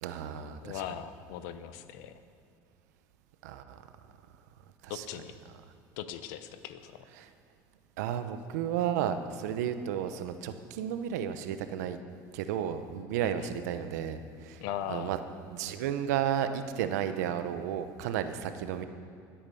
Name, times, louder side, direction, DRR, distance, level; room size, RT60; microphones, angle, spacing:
voice 1, 0.0-0.8 3.4-3.8 4.8-5.0 7.2-7.3 8.0-12.0 12.3-14.6 14.9-15.2 15.5-18.8, right 9 dB, 90° right, 10 dB, 0.9 m, -33 dB
voice 2, 0.6-2.2 4.9-5.3 6.0-7.0 13.2-13.5 14.6-15.1, left 10 dB, 80° left, 11 dB, 0.9 m, -39 dB
16.5 x 8.8 x 7.0 m, 2.5 s
supercardioid pair, 95°, 9 cm